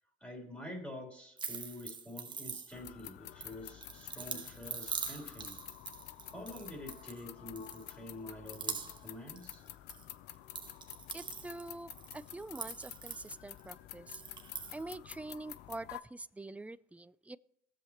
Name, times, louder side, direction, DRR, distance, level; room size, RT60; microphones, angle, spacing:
voice 1, 0.2-5.6 6.3-9.6, left 1 dB, 10° left, 0 dB, 3.2 m, -47 dB
sound 1, 1.4-3.0 3.4-7.2 7.6-8.1 8.5-9.1 9.4-10.0 10.3-13.6 14.1-14.8, right 5 dB, 25° right, 1.1 m, -43 dB
sound 2, 2.7-16.0, left 13 dB, 85° left, 0.6 m, -50 dB
voice 2, 11.1-14.2 14.7-17.4, right 2 dB, 10° right, 16 dB, 0.3 m, -45 dB
20.5 x 7.7 x 2.9 m, 0.78 s
cardioid pair, 110°, 17 cm